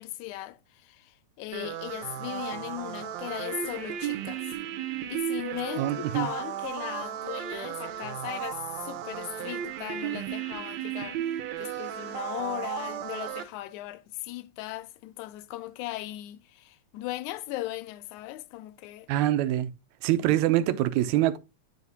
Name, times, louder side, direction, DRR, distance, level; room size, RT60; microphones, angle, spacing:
voice 1, 0.0-4.6 5.1-19.1, left 16 dB, 85° left, 2.0 m, -38 dB
sound 1, 1.5-13.4, right 10 dB, 70° right, 2.0 m, -35 dB
voice 2, 5.8-6.3 19.1-19.7 20.0-21.4, right 13 dB, 90° right, 2.0 m, -24 dB
9.7 x 5.0 x 2.7 m
omnidirectional pair, 3.3 m